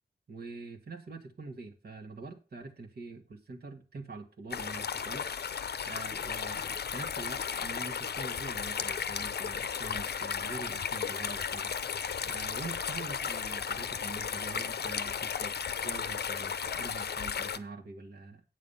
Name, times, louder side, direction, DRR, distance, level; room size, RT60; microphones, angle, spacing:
voice 1, 0.3-5.3 5.8-15.5 15.8-18.4, right 3 dB, 70° right, 1 dB, 1.6 m, -44 dB
sound 1, 4.5-17.6, left 7 dB, 75° left, 0.6 m, -35 dB
8.5 x 6.7 x 5.6 m, 0.33 s
cardioid pair, 60°, 17 cm